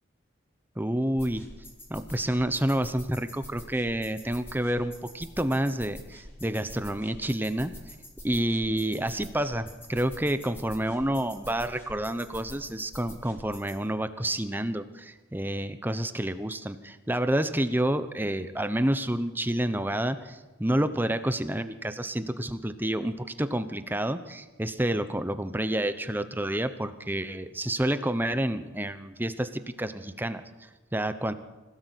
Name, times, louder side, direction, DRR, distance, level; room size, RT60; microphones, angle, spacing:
voice 1, 0.8-1.4 1.9-7.7 8.2-31.3, right 1 dB, 10° right, 11 dB, 0.9 m, -29 dB
sound 1, 1.1-13.8, left 1 dB, 10° left, 4.0 m, -47 dB
25.5 x 17.5 x 8.3 m, 1.2 s
head